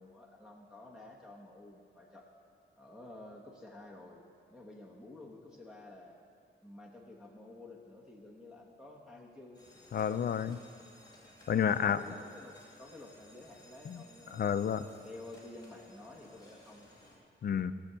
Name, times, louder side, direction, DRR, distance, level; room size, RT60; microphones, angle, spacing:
voice 1, 0.0-2.3 2.8-4.2 4.5-6.2 6.6-9.6 11.6-14.7 15.0-16.9, left 2 dB, 5° right, -4 dB, 1.2 m, -51 dB
sound 1, 9.5-17.2, left 1 dB, 20° left, 2.8 m, -59 dB
voice 2, 9.9-10.6 11.5-12.0 13.9-14.0 14.3-14.8 17.4-17.7, left 8 dB, 50° left, 11 dB, 0.5 m, -30 dB
17.0 x 7.1 x 6.8 m, 2.5 s
wide cardioid pair, 170°, 20 cm